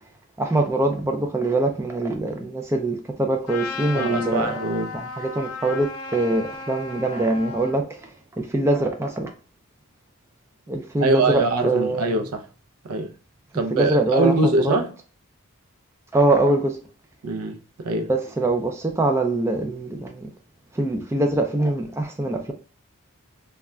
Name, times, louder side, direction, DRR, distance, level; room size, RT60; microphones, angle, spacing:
voice 1, 0.4-4.6 4.9-9.3 10.7-12.1 13.7-14.8 16.1-16.8 18.1-20.3 20.7-22.5, right 2 dB, 10° right, 0.3 m, -23 dB
Trumpet, 3.5-7.8, left 4 dB, 75° left, 0.5 m, -34 dB
voice 2, 3.9-4.9 11.0-12.4 12.8-13.1 13.5-14.9 17.2-18.1, right 2 dB, 80° right, 0.4 m, -23 dB
2.3 x 2.1 x 3.6 m
head